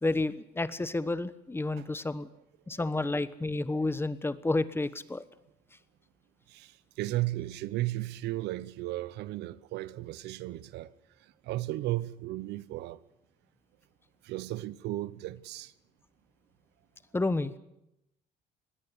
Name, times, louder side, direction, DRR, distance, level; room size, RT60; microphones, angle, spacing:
voice 1, 0.0-2.3 2.7-5.2 17.1-17.6, left 2 dB, 15° left, 1.1 m, -30 dB
voice 2, 7.0-10.9 11.4-13.0 14.2-15.7, right 16 dB, 85° right, 0.9 m, -35 dB
20.5 x 16.5 x 9.8 m
cardioid pair, 110°, 17 cm